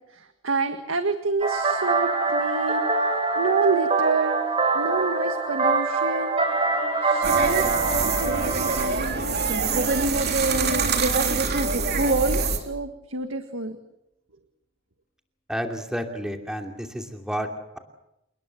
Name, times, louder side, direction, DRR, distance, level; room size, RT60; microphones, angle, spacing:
voice 1, 0.1-2.9 3.4-4.4 4.7-6.4 7.0-13.8, right 3 dB, 75° right, 7 dB, 1.8 m, -29 dB
sound 1, 1.4-8.9, right 4 dB, 30° right, 4.0 m, -24 dB
Bowed string instrument, 6.4-12.7, left 2 dB, 45° left, 7.1 m, -46 dB
sound 2, 7.2-12.6, right 4 dB, 50° right, 3.4 m, -24 dB
voice 2, 15.5-17.5, equal, 5° right, 4 dB, 2.8 m, -30 dB
29.0 x 20.5 x 7.2 m, 0.85 s
head